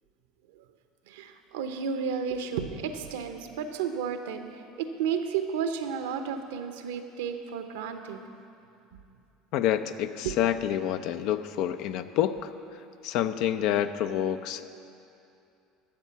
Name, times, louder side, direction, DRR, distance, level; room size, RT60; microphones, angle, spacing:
voice 1, 1.1-8.2 10.2-10.3, right 7 dB, 75° right, 7 dB, 0.8 m, -32 dB
voice 2, 9.5-12.5 13.0-14.6, left 11 dB, 60° left, 10 dB, 0.5 m, -28 dB
12.0 x 7.3 x 5.8 m, 2.6 s
hypercardioid pair, 75°, 0 cm